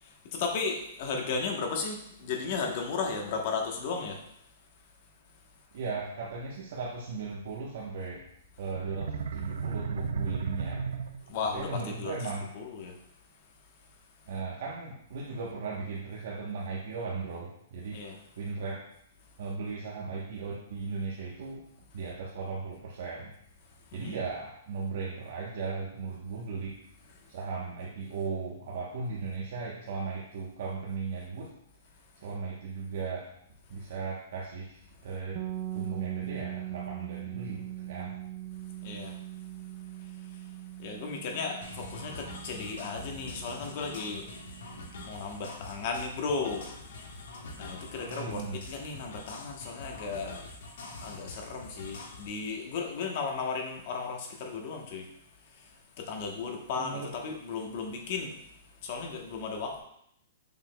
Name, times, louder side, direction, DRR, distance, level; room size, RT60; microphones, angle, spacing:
voice 1, 0.0-4.2 11.3-12.1 12.5-12.9 17.9-18.2 24.0-24.2 38.8-39.2 40.8-44.3 45.0-46.9 47.6-50.5 51.0-55.1 55.6-55.7 56.0-58.3 58.8-59.8, left 4 dB, 35° left, 2 dB, 1.0 m, -35 dB
voice 2, 5.7-8.2 8.6-10.8 11.5-12.5 14.3-18.0 18.4-18.9 19.4-21.6 21.9-23.3 23.9-26.8 27.3-31.5 32.2-33.3 33.7-35.4 35.7-38.2 47.9-48.6 56.8-57.1, right 4 dB, 55° right, -3 dB, 1.0 m, -37 dB
sound 1, 8.8-11.6, right 5 dB, 85° right, 0.5 m, -34 dB
sound 2, 35.3-45.1, right 14 dB, 20° right, 0.4 m, -41 dB
sound 3, 41.6-52.3, left 2 dB, 65° left, 1.3 m, -45 dB
7.0 x 5.9 x 2.2 m, 0.73 s
hypercardioid pair, 175°, 0 cm